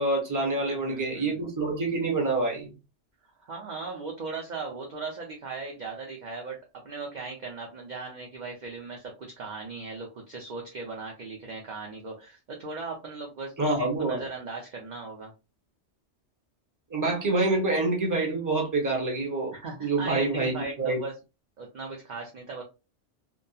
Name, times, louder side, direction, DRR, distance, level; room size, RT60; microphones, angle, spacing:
voice 1, 0.0-2.7 13.6-14.2 16.9-19.5 19.8-21.0, right 2 dB, 20° right, 0.7 m, -26 dB
voice 2, 0.6-1.5 3.4-15.3 19.5-21.2 21.6-22.6, right 4 dB, 50° right, 0.6 m, -38 dB
2.7 x 2.3 x 2.3 m
omnidirectional pair, 1.2 m